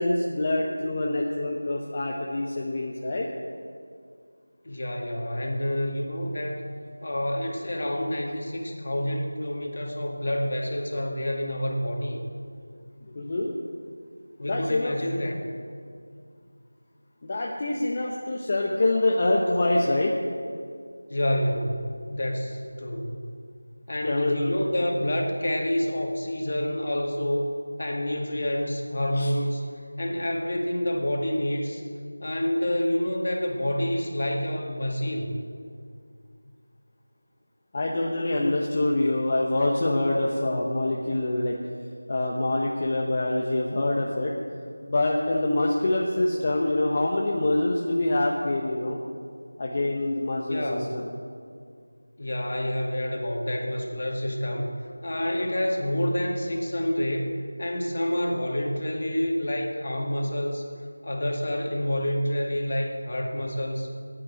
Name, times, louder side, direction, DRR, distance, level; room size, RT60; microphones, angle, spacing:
voice 1, 0.0-3.3 13.1-13.5 14.4-14.9 17.2-20.2 24.0-24.5 29.1-29.3 37.7-41.6 42.1-44.4 44.8-49.0 49.6-51.1, left 2 dB, 30° left, -2 dB, 0.9 m, -25 dB
voice 2, 4.7-6.6 7.0-12.2 14.4-15.4 21.1-23.3 23.9-27.5 27.8-29.7 30.0-31.8 32.2-35.4 50.5-51.0 52.2-54.7 55.0-57.3 57.6-60.6 61.0-63.9, left 1 dB, 45° left, 1 dB, 2.0 m, -28 dB
9.9 x 9.1 x 8.8 m, 2.2 s
figure-of-eight pair, 170°, 0 cm